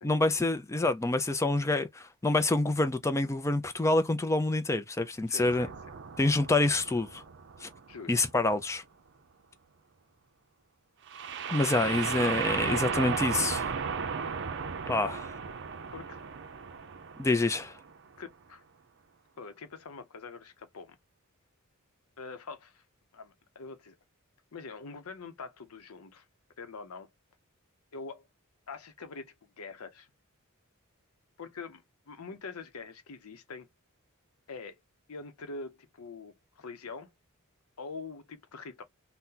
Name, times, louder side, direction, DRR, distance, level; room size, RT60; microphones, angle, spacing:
voice 1, 0.0-5.7 6.2-7.2 7.6-7.7 8.1-8.8 11.5-13.7 14.9-15.2 17.2-17.8, left 2 dB, 15° left, 0.4 m, -27 dB
voice 2, 5.3-5.7 7.9-8.2 15.0-15.2 15.9-16.2 18.2-18.6 19.4-21.0 22.2-22.8 23.1-24.0 24.5-26.2 26.6-27.1 27.9-28.3 28.7-30.1 31.4-33.7 34.5-34.8 35.1-37.1 37.8-38.8, left 4 dB, 75° left, 0.7 m, -44 dB
sound 1, 5.5-8.3 11.1-17.9, right 6 dB, 55° right, 0.5 m, -35 dB
2.8 x 2.1 x 3.6 m
head